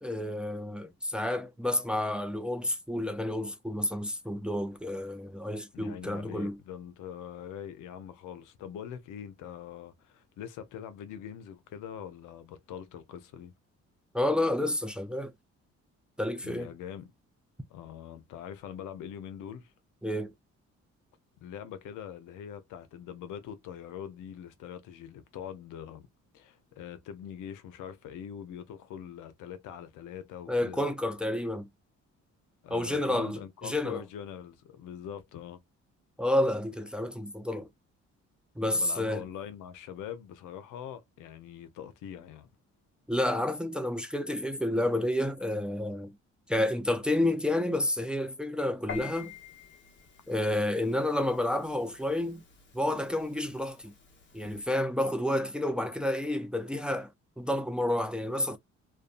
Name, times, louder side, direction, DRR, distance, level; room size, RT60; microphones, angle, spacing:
voice 1, 0.0-6.6 14.1-15.3 16.2-16.7 20.0-20.3 30.5-31.7 32.7-34.0 36.2-37.7 38.6-39.2 43.1-46.1 46.5-49.3 50.3-52.4 52.7-53.9 54.3-57.1 57.4-58.6, left 1 dB, 5° right, 0.4 m, -30 dB
voice 2, 5.7-13.5 16.4-17.1 17.7-19.7 21.4-26.1 26.3-30.8 32.6-35.6 38.7-42.5, left 9 dB, 90° left, 0.6 m, -43 dB
Piano, 48.9-54.7, left 7 dB, 40° left, 1.1 m, -48 dB
2.6 x 2.2 x 2.4 m
cardioid pair, 90°, 30 cm